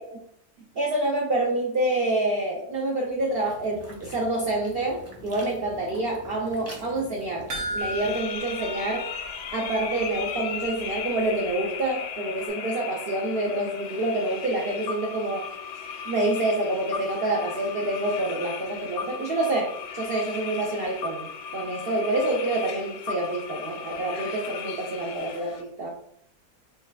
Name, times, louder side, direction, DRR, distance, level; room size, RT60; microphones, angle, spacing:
voice 1, 0.7-9.1 9.5-15.5 16.1-26.0, right 2 dB, 75° right, -1 dB, 0.5 m, -27 dB
sound 1, 2.7-8.2, left 1 dB, 15° right, 0.5 m, -46 dB
sound 2, 7.5-10.0 10.3-10.4 10.9-11.0, equal, 55° right, 1.2 m, -35 dB
sound 3, 7.8-25.6, left 7 dB, 85° left, 1.2 m, -36 dB
6.3 x 2.2 x 2.3 m, 0.68 s
omnidirectional pair, 1.8 m